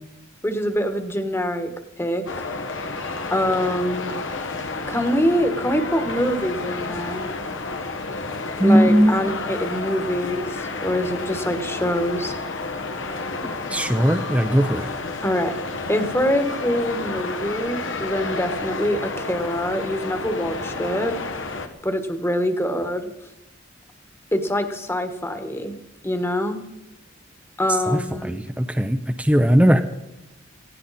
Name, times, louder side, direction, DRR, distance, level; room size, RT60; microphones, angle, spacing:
voice 1, 0.4-1.7 2.0-2.2 3.3-4.1 4.9-7.3 8.6-12.3 15.2-15.6 15.9-21.1 21.8-23.0 24.3-25.7 26.0-26.6 27.6-28.3, equal, 15° left, 8 dB, 1.4 m, -24 dB
sound 1, 2.3-21.7, left 3 dB, 80° left, 1.6 m, -31 dB
voice 2, 8.6-9.2 13.7-14.9 27.9-29.8, equal, 5° right, 6 dB, 0.6 m, -18 dB
17.5 x 16.5 x 4.2 m, 0.92 s
head